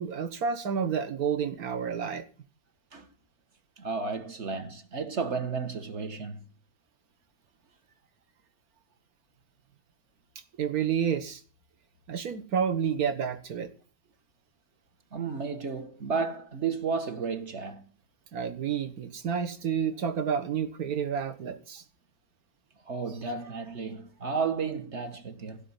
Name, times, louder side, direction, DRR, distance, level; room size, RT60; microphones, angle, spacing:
voice 1, 0.0-2.3 10.6-11.4 12.1-13.7 18.3-21.8, right 7 dB, 60° right, 1.8 m, -30 dB
voice 2, 3.8-6.4 15.1-17.9 22.9-25.6, right 5 dB, 45° right, 1.6 m, -32 dB
16.5 x 5.6 x 9.8 m
omnidirectional pair, 1.8 m